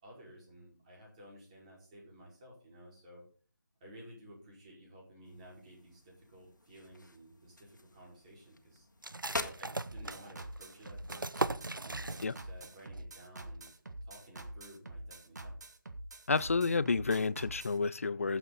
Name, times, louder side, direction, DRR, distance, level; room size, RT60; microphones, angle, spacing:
voice 1, 0.0-3.2 3.8-8.9 9.4-13.7 14.0-15.6, equal, 20° right, 5.1 m, -54 dB
sound 1, 5.2-12.9, left 2 dB, 65° left, 1.8 m, -47 dB
sound 2, 9.0-12.7 12.9-13.0 13.5-13.9, right 2 dB, 85° right, 0.7 m, -39 dB
sound 3, 9.9-17.8, right 2 dB, 60° right, 1.9 m, -46 dB
voice 2, 16.3-18.4, left 4 dB, 45° left, 0.4 m, -30 dB
14.5 x 8.0 x 4.1 m
figure-of-eight pair, 160°, 11 cm